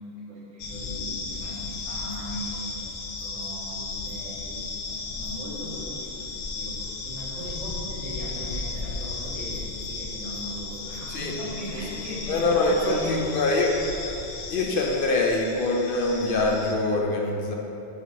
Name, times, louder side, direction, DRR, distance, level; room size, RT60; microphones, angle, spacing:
voice 1, 0.0-4.7 5.1-13.6, left 1 dB, 80° right, -9 dB, 1.9 m, -38 dB
sound 1, 0.6-16.7, left 3 dB, 85° left, 1.0 m, -35 dB
voice 2, 12.3-13.7 14.5-17.5, left 2 dB, 60° left, 0 dB, 0.7 m, -24 dB
6.7 x 5.2 x 2.8 m, 2.8 s
omnidirectional pair, 1.1 m